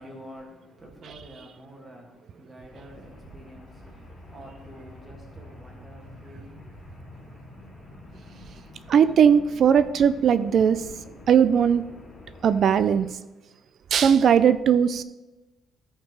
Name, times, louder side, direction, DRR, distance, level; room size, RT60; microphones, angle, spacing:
voice 1, 0.0-2.1 2.4-3.7 4.3-6.6, equal, 15° right, 1.9 m, -47 dB
sound 1, 2.7-13.1, left 2 dB, 30° left, 2.5 m, -47 dB
voice 2, 8.9-10.8 11.3-11.8 12.4-13.1 13.9-15.0, right 8 dB, 50° right, 0.3 m, -19 dB
13.0 x 4.5 x 4.8 m
cardioid pair, 135°, 0 cm